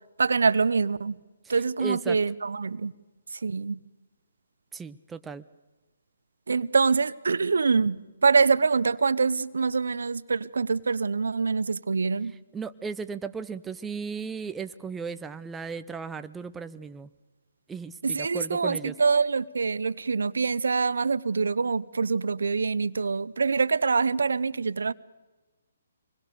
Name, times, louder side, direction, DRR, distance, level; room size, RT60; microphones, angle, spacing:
voice 1, 0.2-1.2 1.5-2.9 3.3-3.8 6.5-12.3 18.0-24.9, right 4 dB, 75° right, 0.7 m, -25 dB
voice 2, 1.8-2.2 4.7-5.4 12.5-17.1 17.7-18.9, right 5 dB, 10° right, 0.7 m, -36 dB
25.0 x 21.0 x 6.8 m
hypercardioid pair, 140°, 0 cm